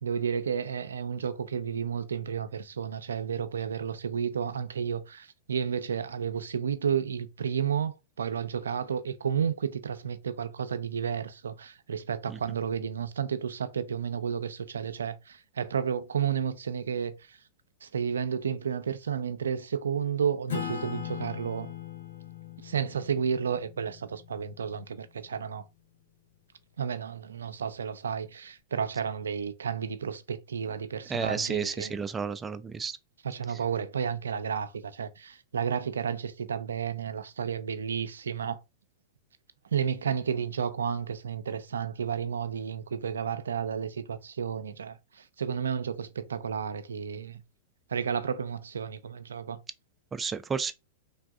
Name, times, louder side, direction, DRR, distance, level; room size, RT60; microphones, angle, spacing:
voice 1, 0.0-17.4 17.8-21.7 22.6-25.6 26.8-32.0 33.2-38.6 39.7-47.4 47.9-49.6, right 7 dB, 85° right, 0.4 m, -32 dB
Acoustic guitar / Strum, 20.5-25.5, left 9 dB, 85° left, 0.7 m, -40 dB
voice 2, 31.1-33.0 33.5-33.6 50.1-50.7, right 5 dB, 15° right, 0.4 m, -32 dB
3.4 x 2.6 x 2.3 m
hypercardioid pair, 110°, 0 cm